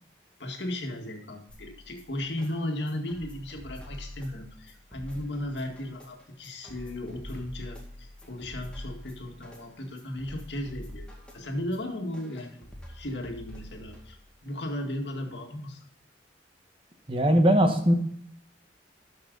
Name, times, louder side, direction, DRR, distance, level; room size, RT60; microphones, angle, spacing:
voice 1, 0.4-11.1 11.3-15.8, left 1 dB, 80° left, 3 dB, 1.9 m, -36 dB
sound 1, 1.5-14.5, equal, 5° left, 2.0 m, -46 dB
voice 2, 17.1-17.9, equal, 30° right, 5 dB, 1.3 m, -20 dB
12.5 x 6.0 x 3.9 m, 0.65 s
head